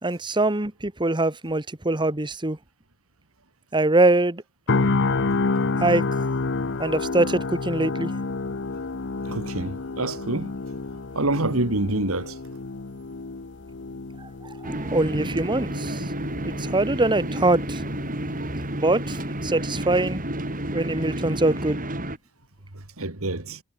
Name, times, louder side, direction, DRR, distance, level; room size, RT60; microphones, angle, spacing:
voice 1, 0.0-2.6 3.7-4.4 5.8-6.0 6.8-8.1 14.6-16.0 16.4-17.8 18.7-19.1 19.4-20.2 20.7-21.8, right 2 dB, 20° right, 1.6 m, -23 dB
sound 1, 4.7-18.7 19.0-19.2, left 3 dB, 55° left, 0.9 m, -29 dB
voice 2, 9.2-10.5 11.1-12.4 23.0-23.6, right 2 dB, 80° right, 2.9 m, -26 dB
sound 2, 14.6-22.2, right 1 dB, 40° right, 7.8 m, -30 dB
head